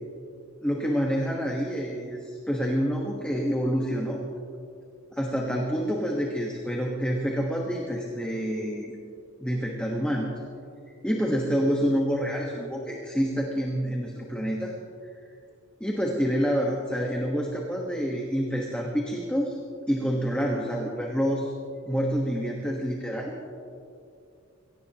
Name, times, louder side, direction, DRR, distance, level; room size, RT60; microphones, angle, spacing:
voice 1, 0.6-4.2 5.1-8.9 9.4-10.3 11.0-14.7 15.8-19.6 19.9-21.5 21.9-23.6, equal, 5° left, -2 dB, 1.3 m, -27 dB
22.0 x 18.0 x 3.0 m, 2.5 s
head